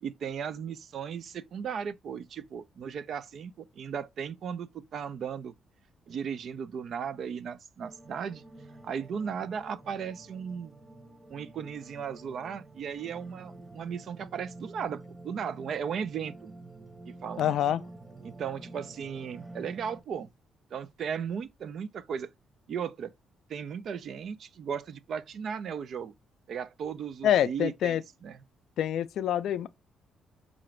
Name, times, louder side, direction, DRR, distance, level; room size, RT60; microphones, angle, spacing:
voice 1, 0.0-5.5 6.1-8.4 8.8-10.7 11.3-16.5 17.1-17.5 18.2-20.3 20.7-22.3 22.7-23.1 23.5-26.1 26.5-28.4, right 7 dB, 60° right, 0.4 m, -36 dB
sound 1, 7.8-20.0, right 2 dB, 5° right, 0.9 m, -49 dB
voice 2, 17.4-17.8 27.2-28.0 28.8-29.7, left 10 dB, 75° left, 0.3 m, -26 dB
4.8 x 2.5 x 3.1 m
cardioid pair, 90°, 0 cm